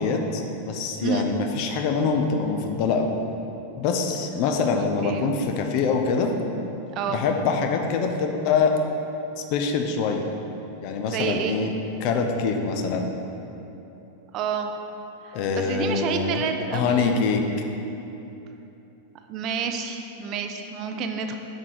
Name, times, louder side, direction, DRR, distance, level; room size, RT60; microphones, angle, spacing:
voice 1, 0.0-3.1 3.8-6.3 7.1-8.8 9.4-10.2 10.7-11.7 12.0-13.1 15.3-16.4 16.7-17.4, left 5 dB, 45° left, 4 dB, 0.5 m, -24 dB
voice 2, 4.7-5.4 6.9-7.2 11.1-11.6 14.3-14.7 15.2-17.2 19.3-21.4, right 6 dB, 35° right, 5 dB, 0.4 m, -29 dB
6.0 x 4.4 x 4.7 m, 3.0 s
figure-of-eight pair, 90°, 0 cm